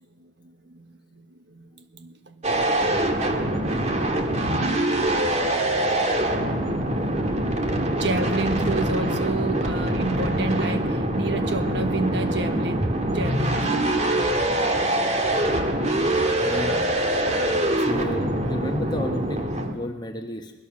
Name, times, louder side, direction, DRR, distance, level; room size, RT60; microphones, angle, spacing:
voice 1, 0.0-2.8 3.1-3.3 7.9-13.9, right 2 dB, 65° right, 1.4 m, -31 dB
sound 1, 2.4-19.7, right 1 dB, 40° right, 1.9 m, -24 dB
voice 2, 16.4-16.9 17.8-20.5, left 1 dB, 25° left, 1.2 m, -32 dB
20.5 x 20.0 x 6.5 m
head